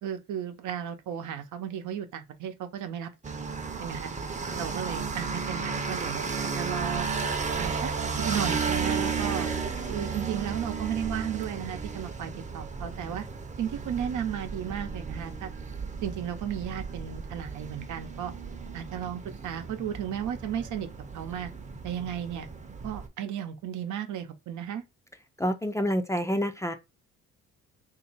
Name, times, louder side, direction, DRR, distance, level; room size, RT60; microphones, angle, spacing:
voice 1, 0.0-3.1 3.8-4.1 4.6-7.1 7.6-7.9 8.2-9.5 9.9-13.2 13.6-15.5 16.0-18.3 18.7-20.9 21.1-21.5 21.8-22.5 22.8-24.8, right 9 dB, 75° right, 0.8 m, -34 dB
sound 1, 3.2-23.1, right 5 dB, 25° right, 0.7 m, -34 dB
voice 2, 25.4-26.7, equal, 10° left, 0.5 m, -27 dB
3.0 x 2.7 x 4.0 m
cardioid pair, 90°, 30 cm